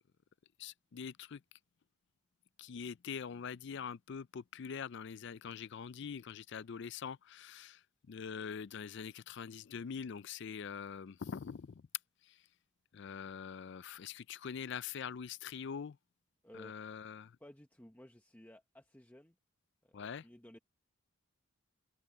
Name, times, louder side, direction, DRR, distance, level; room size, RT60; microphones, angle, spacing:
voice 1, 0.6-1.4 2.6-7.8 8.1-11.7 12.9-16.0 16.5-17.3 19.9-20.2, left 6 dB, 55° left, 0.4 m, -44 dB
voice 2, 16.4-16.7 17.4-19.3 19.8-20.6, left 1 dB, 10° left, 0.8 m, -56 dB
head